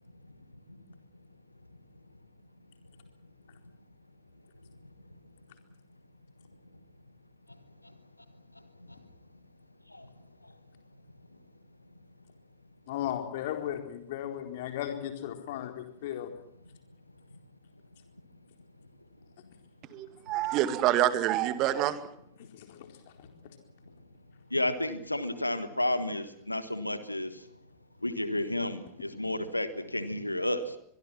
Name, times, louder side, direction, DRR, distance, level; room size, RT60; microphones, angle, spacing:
voice 1, 12.9-16.3 22.4-22.9 23.2-23.3, left 11 dB, 55° left, 5 dB, 4.2 m, -36 dB
voice 2, 19.9-22.0, right 13 dB, 40° right, 12 dB, 2.1 m, -27 dB
voice 3, 24.5-27.5 28.0-30.8, left 1 dB, 85° left, 13 dB, 1.4 m, -32 dB
23.5 x 23.5 x 5.9 m, 0.72 s
figure-of-eight pair, 90°, 0 cm